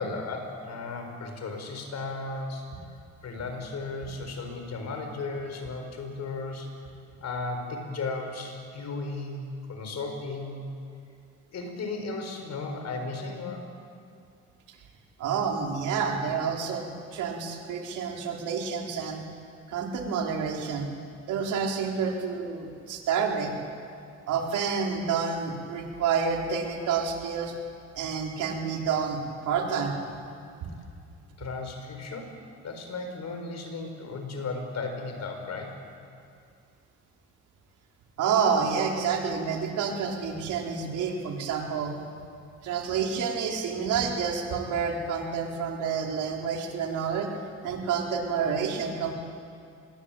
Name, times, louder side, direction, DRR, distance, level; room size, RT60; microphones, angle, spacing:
voice 1, 0.0-2.7 3.2-6.7 7.2-9.4 9.7-10.6 11.5-13.7 31.4-32.4 32.6-35.8, left 3 dB, 60° left, 5 dB, 6.0 m, -35 dB
voice 2, 15.2-19.3 19.7-20.9 21.3-23.5 24.3-27.5 27.9-29.2 29.4-30.2 38.2-41.9 42.6-47.3 47.6-49.1, right 6 dB, 90° right, 1 dB, 4.3 m, -29 dB
25.5 x 22.0 x 9.2 m, 2.4 s
cardioid pair, 90°, 30 cm